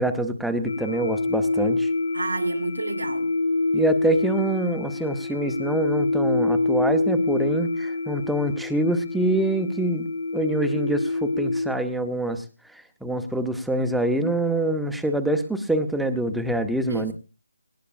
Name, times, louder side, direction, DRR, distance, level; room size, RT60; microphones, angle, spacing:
voice 1, 0.0-1.9 3.7-10.1 10.3-12.4 12.7-17.1, right 1 dB, ahead, 0.8 m, -25 dB
sound 1, 0.6-11.6, left 3 dB, 40° left, 2.0 m, -26 dB
voice 2, 2.1-3.3 16.9-17.1, right 2 dB, 85° right, 1.6 m, -29 dB
20.5 x 18.5 x 2.5 m
figure-of-eight pair, 160°, 0 cm